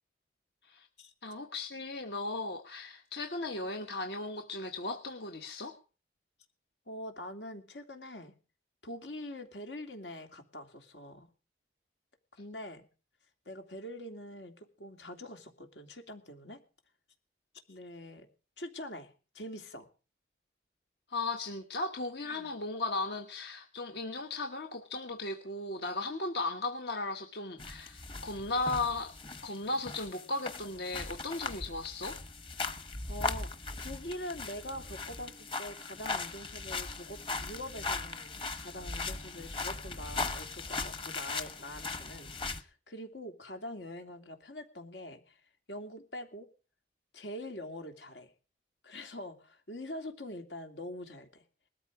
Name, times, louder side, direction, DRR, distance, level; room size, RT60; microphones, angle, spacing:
voice 1, 1.2-5.8 21.1-29.2 29.4-32.2, left 2 dB, 70° left, 6 dB, 1.3 m, -36 dB
voice 2, 6.9-8.3 8.8-11.3 12.4-12.9 13.5-16.6 17.7-18.3 18.6-19.9 22.3-22.6 32.6-33.5 33.8-45.4 45.7-46.5 47.1-48.3 48.8-51.4, left 1 dB, 85° left, 5 dB, 2.8 m, -44 dB
sound 1, 27.6-42.6, left 3 dB, 30° left, 1.1 m, -39 dB
20.0 x 13.5 x 4.9 m, 0.37 s
head